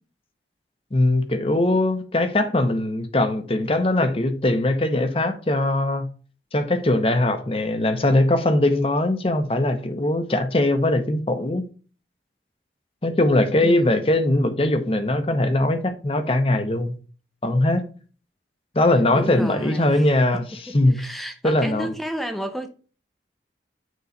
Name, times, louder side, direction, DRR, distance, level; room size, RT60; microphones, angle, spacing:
voice 1, 0.9-6.1 6.5-11.6 13.0-17.0 17.4-17.8 18.7-20.4 20.7-21.0 21.4-21.9, left 1 dB, 30° left, 0.8 m, -21 dB
voice 2, 13.6-14.0 19.1-20.2 20.5-22.7, equal, ahead, 0.7 m, -31 dB
9.2 x 3.1 x 4.0 m
head